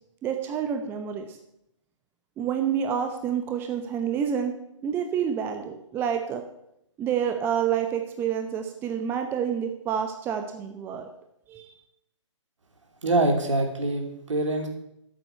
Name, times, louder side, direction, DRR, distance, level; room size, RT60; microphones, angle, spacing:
voice 1, 0.2-1.4 2.4-4.5 4.8-6.4 7.0-11.1 11.5-11.7, right 8 dB, 15° right, 6 dB, 0.8 m, -28 dB
voice 2, 13.0-14.7, right 2 dB, 70° right, 4 dB, 3.0 m, -24 dB
9.3 x 8.2 x 8.2 m, 0.79 s
figure-of-eight pair, 140°, 16 cm